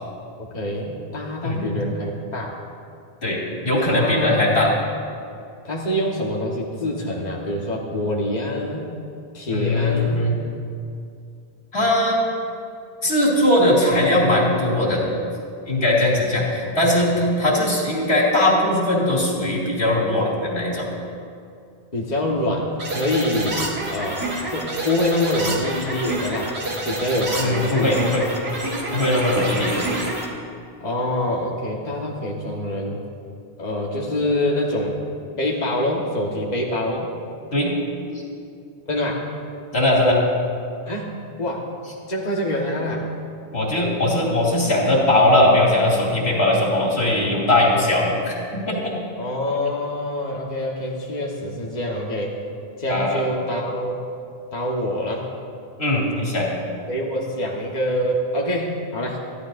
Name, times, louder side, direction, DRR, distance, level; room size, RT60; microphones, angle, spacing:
voice 1, 0.5-2.5 3.9-4.6 5.6-8.9 9.3-10.2 16.6-17.0 21.9-28.0 30.8-33.0 33.6-35.0 35.4-37.1 38.9-39.3 40.9-41.7 42.1-43.1 48.1-48.2 49.2-52.4 52.8-54.0 54.5-55.2 56.9-59.2, left 1 dB, 40° left, -3 dB, 1.6 m, -25 dB
voice 2, 3.2-4.7 9.5-10.4 11.7-12.2 13.0-15.1 15.7-20.9 23.4-23.5 27.4-28.2 28.9-29.8 37.5-37.7 38.1-38.2 39.7-40.2 43.5-48.9 52.9-53.3 55.8-56.5, left 1 dB, 85° left, -4 dB, 3.0 m, -20 dB
sound 1, 22.8-30.3, right 1 dB, 80° right, 2.2 m, -28 dB
24.0 x 14.0 x 2.6 m, 2.4 s
omnidirectional pair, 1.1 m